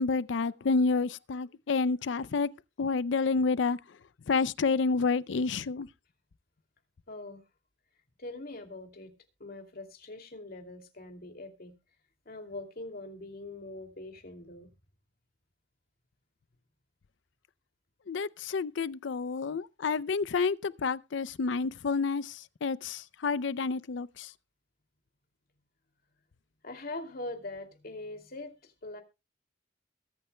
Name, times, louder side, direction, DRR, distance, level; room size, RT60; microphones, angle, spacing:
voice 1, 0.0-2.5 2.8-3.8 4.3-5.9 18.1-24.3, left 4 dB, 80° left, 0.5 m, -29 dB
voice 2, 7.1-7.4 8.2-9.1 9.4-11.7 12.3-14.7 26.6-29.0, left 2 dB, 55° left, 2.6 m, -42 dB
22.0 x 8.7 x 2.2 m
head